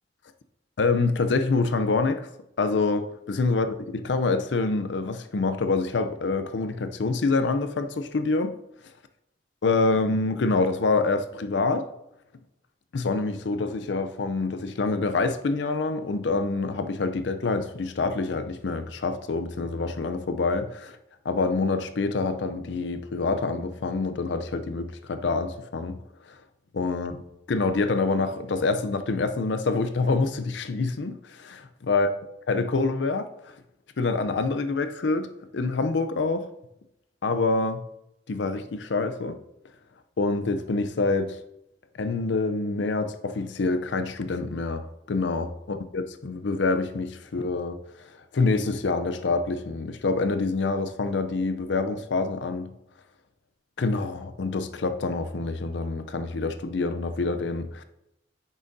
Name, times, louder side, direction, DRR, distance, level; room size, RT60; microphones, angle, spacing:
voice 1, 0.8-2.3 2.6-3.8 4.0-8.5 9.6-11.9 12.9-21.0 21.2-26.0 26.3-26.4 26.7-27.1 27.5-32.1 32.5-33.3 34.0-36.5 37.2-37.8 38.3-39.4 40.2-41.4 42.0-48.1 48.3-52.7 53.8-57.8, left 3 dB, 75° left, 0.5 m, -26 dB
8.7 x 6.3 x 2.6 m
head